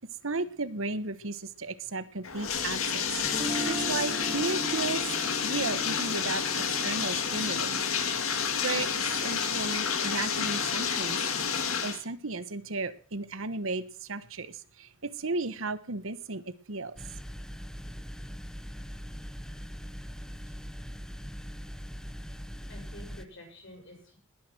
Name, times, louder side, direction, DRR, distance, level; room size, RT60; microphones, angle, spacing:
voice 1, 0.2-3.2 3.7-5.0 5.4-6.4 6.8-7.8 8.6-8.9 9.2-11.2 11.8-17.0, right 3 dB, 75° right, 13 dB, 1.3 m, -34 dB
Bathtub (filling or washing), 2.2-12.0, left 6 dB, 85° left, 2.2 m, -30 dB
Guitar, 3.2-9.3, right 1 dB, 25° right, 2.1 m, -39 dB
sound 1, 17.0-23.3, equal, 5° left, 0.8 m, -41 dB
voice 2, 22.7-24.2, left 1 dB, 60° left, 3 dB, 6.9 m, -49 dB
20.5 x 10.0 x 6.1 m, 0.42 s
head